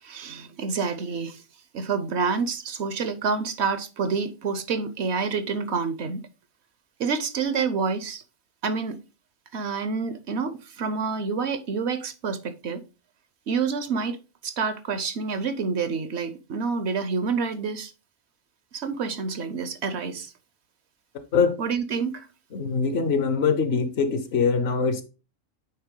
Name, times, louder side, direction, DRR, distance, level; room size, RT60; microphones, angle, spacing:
voice 1, 0.0-1.4 1.7-6.2 7.0-8.2 8.6-9.0 9.5-12.8 13.5-14.2 14.4-17.9 18.7-20.3 21.6-22.3, right 5 dB, 65° right, 0.9 m, -28 dB
voice 2, 22.5-25.0, left 5 dB, 60° left, 0.9 m, -23 dB
8.8 x 3.3 x 3.7 m
omnidirectional pair, 1.3 m